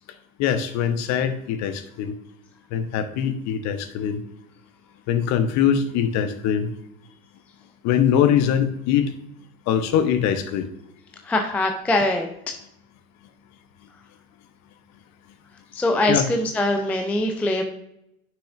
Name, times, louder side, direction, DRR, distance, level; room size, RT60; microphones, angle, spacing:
voice 1, 0.4-2.1 2.7-4.2 5.1-6.7 7.8-9.1 9.7-10.7 16.1-16.3, left 8 dB, 40° left, 9 dB, 0.9 m, -22 dB
voice 2, 11.2-12.3 15.7-17.6, left 1 dB, 5° left, 4 dB, 0.4 m, -22 dB
9.9 x 6.1 x 2.5 m, 0.77 s
figure-of-eight pair, 85°, 44 cm